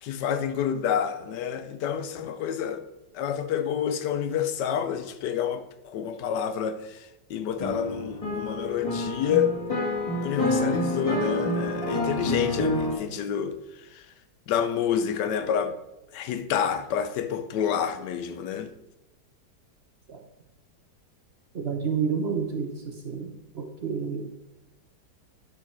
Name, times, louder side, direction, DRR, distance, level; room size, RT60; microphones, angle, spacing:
voice 1, 0.0-2.8 3.1-9.5 10.2-14.1 14.5-15.8 16.1-18.7, left 8 dB, 90° left, 1.3 m, -28 dB
sound 1, 7.6-12.9, left 1 dB, 20° left, 1.6 m, -28 dB
voice 2, 21.5-24.3, right 6 dB, 50° right, 0.8 m, -30 dB
10.5 x 4.6 x 4.5 m
omnidirectional pair, 1.8 m